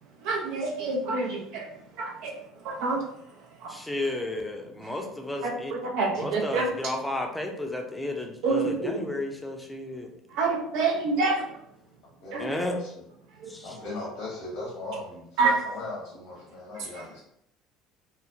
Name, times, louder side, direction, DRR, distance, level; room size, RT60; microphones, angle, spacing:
voice 1, 0.2-1.6 2.0-2.3 2.6-3.0 5.4-6.7 8.4-9.0 10.4-11.4 12.3-12.5 15.4-15.5, right 3 dB, 75° right, -1 dB, 0.5 m, -27 dB
voice 2, 3.7-5.7 6.2-10.1 12.4-12.8 13.5-13.7, left 1 dB, 5° left, 2 dB, 0.5 m, -32 dB
voice 3, 12.2-12.9 13.5-17.2, left 2 dB, 70° left, -7 dB, 1.0 m, -38 dB
3.1 x 2.0 x 2.4 m, 0.73 s
supercardioid pair, 85°, 0 cm